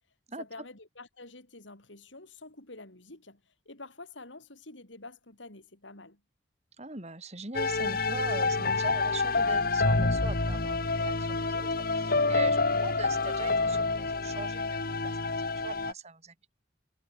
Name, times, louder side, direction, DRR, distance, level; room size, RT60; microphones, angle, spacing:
voice 1, 0.4-6.2, left 2 dB, 75° left, 4.6 m, -48 dB
voice 2, 6.8-16.3, right 3 dB, 35° right, 4.0 m, -41 dB
sound 1, 7.5-15.9, left 3 dB, 50° left, 1.7 m, -28 dB
head